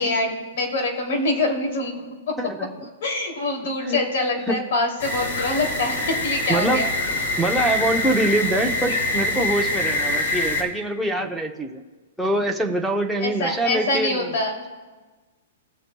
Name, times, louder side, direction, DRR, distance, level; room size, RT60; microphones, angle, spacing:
voice 1, 0.0-2.4 3.0-6.9 13.2-14.6, left 2 dB, 55° left, 1 dB, 2.7 m, -25 dB
voice 2, 2.4-2.8 3.8-4.0 4.5-4.6 6.5-6.8 7.4-11.8 12.2-14.3, right 1 dB, ahead, 4 dB, 0.8 m, -24 dB
sound 1, 5.0-10.6, left 2 dB, 85° left, 2.3 m, -25 dB
19.5 x 7.6 x 2.3 m, 1.3 s
hypercardioid pair, 165°, 0 cm